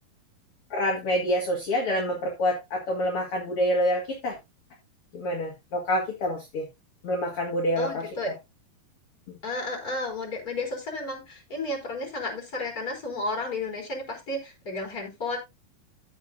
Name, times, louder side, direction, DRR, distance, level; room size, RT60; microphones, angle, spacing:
voice 1, 0.7-4.3 5.1-6.6 7.0-8.1, equal, 40° left, 0 dB, 2.6 m, -27 dB
voice 2, 7.8-8.3 9.4-15.4, left 2 dB, 25° left, 2 dB, 3.8 m, -32 dB
15.0 x 6.5 x 2.6 m, 0.22 s
omnidirectional pair, 4.6 m